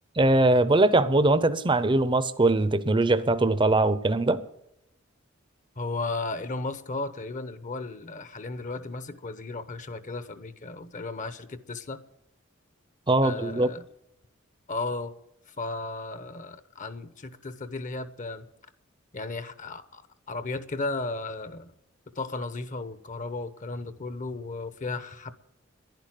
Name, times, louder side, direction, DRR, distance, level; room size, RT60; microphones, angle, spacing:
voice 1, 0.2-4.4 13.1-13.7, right 2 dB, 25° right, 0.7 m, -21 dB
voice 2, 5.8-12.0 13.2-13.9 14.7-15.1 15.6-18.5 19.1-20.0 20.3-21.7 22.2-25.3, left 3 dB, 40° left, 0.9 m, -35 dB
11.0 x 10.5 x 7.6 m
head